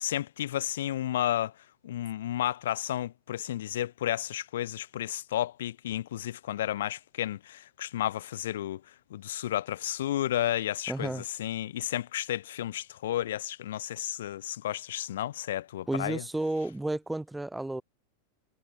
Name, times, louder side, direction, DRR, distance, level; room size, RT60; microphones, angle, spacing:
voice 1, 0.0-1.5 1.8-8.8 9.1-16.2, left 12 dB, 60° left, 0.9 m, -32 dB
voice 2, 10.9-11.2 15.9-17.8, right 2 dB, 5° right, 0.7 m, -32 dB
figure-of-eight pair, 90°, 0 cm